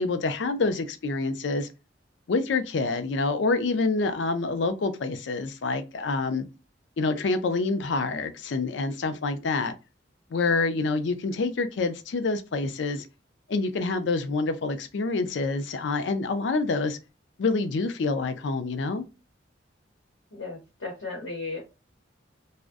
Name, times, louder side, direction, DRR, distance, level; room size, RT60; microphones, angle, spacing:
voice 1, 0.0-1.7 2.3-6.5 7.0-9.7 10.3-13.1 13.5-17.0 17.4-19.0, left 3 dB, 65° left, 0.4 m, -27 dB
voice 2, 20.3-21.6, left 3 dB, 80° left, 0.8 m, -35 dB
2.5 x 2.1 x 2.3 m
head